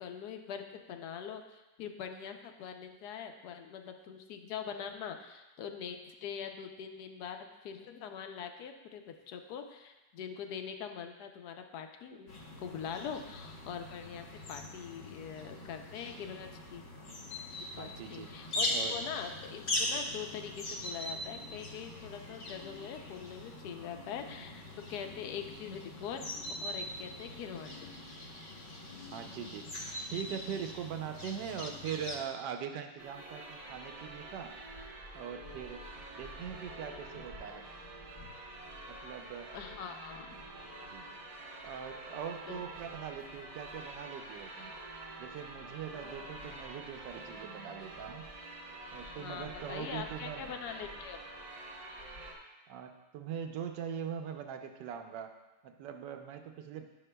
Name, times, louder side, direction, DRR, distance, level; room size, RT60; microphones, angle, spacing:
voice 1, 0.0-12.3 12.6-16.8 17.8-24.6 24.9-26.3 26.6-27.9 39.5-40.4 42.5-42.6 45.9-46.3 49.0-51.2, left 7 dB, 70° left, 5 dB, 1.1 m, -43 dB
sound 1, 12.3-32.2, left 1 dB, 40° left, 1.0 m, -41 dB
voice 2, 17.7-18.4 18.7-19.0 29.1-29.7 30.1-34.6 35.1-35.8 36.2-37.7 38.9-39.5 40.6-41.2 41.6-44.7 45.2-48.2 48.9-50.6 52.7-55.3 55.6-56.9, right 8 dB, 75° right, 6 dB, 1.2 m, -42 dB
sound 2, 33.0-52.3, right 2 dB, 45° right, 1.2 m, -47 dB
10.5 x 6.5 x 2.2 m, 1.1 s
omnidirectional pair, 2.0 m